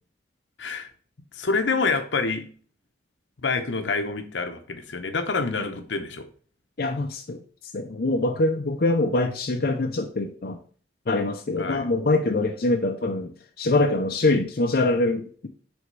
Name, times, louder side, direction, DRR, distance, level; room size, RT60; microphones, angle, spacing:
voice 1, 1.3-2.4 3.4-6.3 11.6-11.9, left 4 dB, 75° left, 7 dB, 0.8 m, -27 dB
voice 2, 6.8-7.4 7.7-10.6 11.1-15.5, left 2 dB, 50° left, 3 dB, 0.5 m, -24 dB
6.2 x 3.5 x 5.2 m, 0.43 s
head